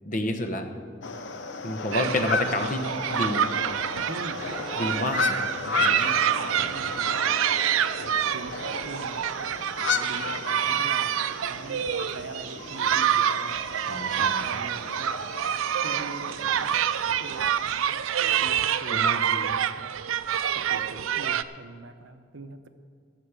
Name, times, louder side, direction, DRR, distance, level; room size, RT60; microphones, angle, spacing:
voice 1, 0.0-0.6 1.6-3.5 4.8-6.0 6.6-6.7 13.9-14.5 18.9-19.5, left 1 dB, 40° left, 6 dB, 1.0 m, -30 dB
sound 1, 1.0-17.8, left 4 dB, 60° left, 0.8 m, -34 dB
sound 2, 1.9-21.4, right 9 dB, 85° right, 0.4 m, -27 dB
voice 2, 4.1-4.6 5.8-7.6 8.0-15.2 15.7-20.0 20.5-22.7, right 2 dB, 70° right, 8 dB, 0.8 m, -43 dB
13.0 x 6.8 x 8.1 m, 2.2 s
head